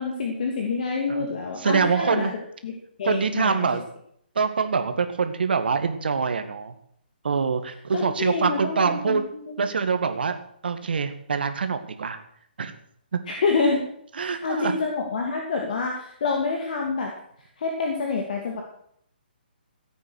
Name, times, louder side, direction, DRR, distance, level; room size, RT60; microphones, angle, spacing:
voice 1, 0.0-2.7 3.0-3.7 7.9-9.6 13.3-13.9 14.2-17.1 17.6-18.6, left 4 dB, 50° left, 1 dB, 2.5 m, -27 dB
voice 2, 1.6-2.3 3.0-3.8 4.4-6.7 7.2-9.2 9.6-10.4 10.6-12.2 12.6-12.7 13.1-13.2 14.2-14.8, right 5 dB, 70° right, 8 dB, 1.9 m, -24 dB
15.5 x 8.6 x 6.4 m, 0.68 s
hypercardioid pair, 160°, 6 cm